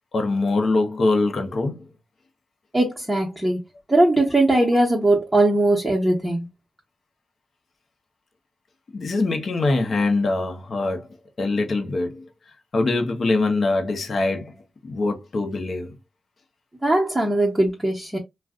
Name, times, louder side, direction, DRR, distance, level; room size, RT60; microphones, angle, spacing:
voice 1, 0.1-1.8 8.9-11.1 11.4-12.2 12.7-14.5 14.8-15.9, left 3 dB, 60° left, 0.8 m, -23 dB
voice 2, 2.7-3.6 3.9-6.5 16.8-18.2, right 1 dB, 10° right, 1.0 m, -20 dB
2.4 x 2.3 x 3.5 m
cardioid pair, 65°, 0 cm